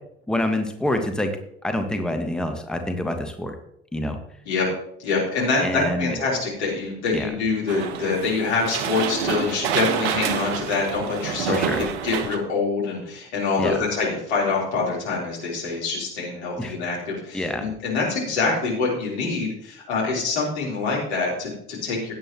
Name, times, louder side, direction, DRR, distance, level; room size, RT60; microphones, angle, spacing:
voice 1, 0.3-1.3 1.6-3.5 3.9-4.2 5.6-6.1 7.1-7.3 11.5-11.9 13.6-13.8 16.6-16.7 17.3-17.6, left 1 dB, ahead, 6 dB, 1.3 m, -26 dB
voice 2, 5.0-11.6 12.0-22.1, left 4 dB, 75° left, -4 dB, 3.8 m, -25 dB
sound 1, 7.7-12.4, right 8 dB, 65° right, 1.0 m, -28 dB
16.0 x 9.3 x 3.0 m, 0.72 s
figure-of-eight pair, 50°, 34 cm